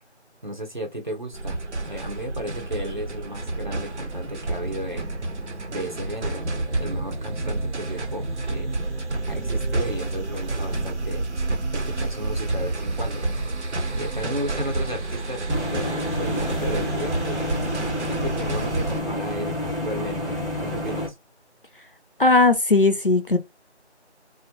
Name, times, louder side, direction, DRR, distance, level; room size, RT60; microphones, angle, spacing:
voice 1, 0.4-5.1 5.7-6.5 6.8-8.7 9.3-11.3 11.7-13.3 14.0-15.4 15.7-17.6 18.1-21.1, equal, 45° right, 0.7 m, -34 dB
sound 1, 1.3-19.0, right 2 dB, 75° right, 0.8 m, -29 dB
sound 2, 15.5-21.1, left 1 dB, ahead, 0.6 m, -29 dB
voice 2, 22.2-23.4, left 3 dB, 50° left, 0.4 m, -18 dB
2.2 x 2.1 x 2.7 m
figure-of-eight pair, 175°, 34 cm